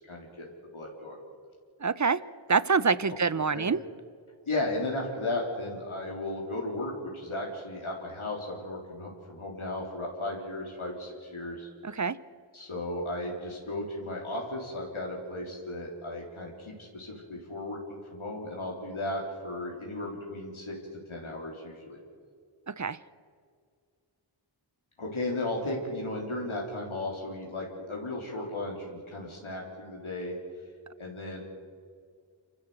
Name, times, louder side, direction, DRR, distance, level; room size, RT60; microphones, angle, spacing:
voice 1, 0.1-0.5 0.7-1.2 3.5-3.6 4.5-11.7 12.5-20.7 21.1-22.0 25.0-30.4 31.0-31.4, left 2 dB, 90° left, -2 dB, 3.7 m, -35 dB
voice 2, 1.8-2.2 2.5-3.8 11.8-12.2 22.7-23.0, right 5 dB, 35° right, 18 dB, 0.8 m, -26 dB
27.5 x 14.0 x 7.9 m, 2.1 s
wide cardioid pair, 45°, 47 cm